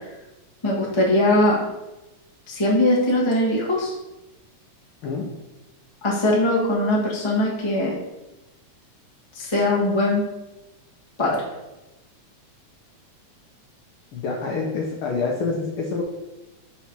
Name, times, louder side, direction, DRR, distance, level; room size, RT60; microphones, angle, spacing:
voice 1, 0.6-1.6 2.5-3.9 6.0-7.9 9.3-10.2 11.2-11.4, left 1 dB, 35° left, -4 dB, 0.4 m, -20 dB
voice 2, 14.1-16.0, left 4 dB, 80° left, -1 dB, 1.2 m, -26 dB
4.7 x 4.4 x 5.9 m, 1.0 s
omnidirectional pair, 3.5 m